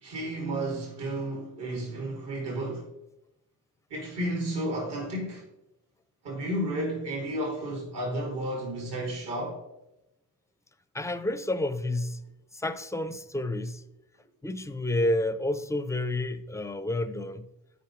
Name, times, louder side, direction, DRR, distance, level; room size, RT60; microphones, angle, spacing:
voice 1, 0.0-2.9 3.9-5.4 6.2-9.6, right 1 dB, 65° right, 2.7 m, -32 dB
voice 2, 10.9-12.2 12.5-13.8 14.4-17.5, left 1 dB, 5° left, 0.5 m, -30 dB
13.0 x 5.1 x 3.2 m
supercardioid pair, 65°, 44 cm